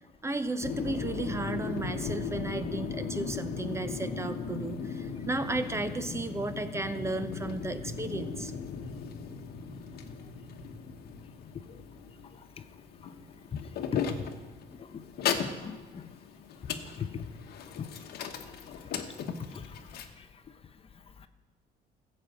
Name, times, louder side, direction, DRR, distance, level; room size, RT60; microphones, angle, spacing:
voice 1, 0.2-8.5, right 2 dB, 15° right, 10 dB, 0.7 m, -34 dB
sound 1, 0.6-20.0, left 6 dB, 70° left, 1.1 m, -37 dB
voice 2, 13.5-14.2 14.9-15.0 15.6-16.0 17.0-17.2 17.8-17.9 19.5-19.8, left 7 dB, 35° left, 10 dB, 0.6 m, -37 dB
14.5 x 5.4 x 7.7 m, 1.3 s
cardioid pair, 110°, 17 cm